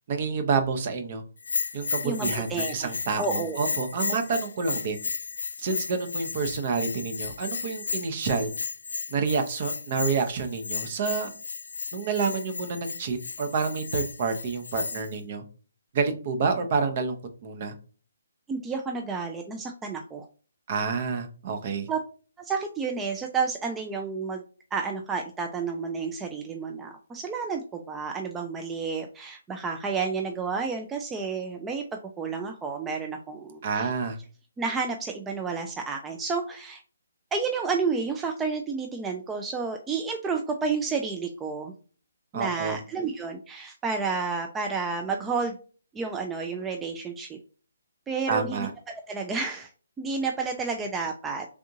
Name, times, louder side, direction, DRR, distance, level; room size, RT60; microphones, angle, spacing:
voice 1, 0.1-1.2 1.7-5.0 5.6-8.5 9.1-11.3 11.9-15.4 15.9-17.2 17.4-17.7 20.7-21.9 33.6-34.2 42.3-42.8 48.3-48.7, right 5 dB, 40° right, 7 dB, 0.7 m, -28 dB
Bell, 1.4-15.2, left 4 dB, 65° left, 0.3 m, -34 dB
voice 2, 2.0-2.9 3.2-3.7 18.5-20.3 21.9-22.0 22.4-24.4 24.7-31.8 32.2-33.9 34.6-36.8 37.3-41.7 42.3-45.5 45.9-47.4 48.1-48.7 49.1-49.7 50.0-51.5, right 5 dB, 10° right, 2 dB, 0.4 m, -30 dB
3.6 x 3.5 x 2.6 m, 0.39 s
figure-of-eight pair, 140°, 0 cm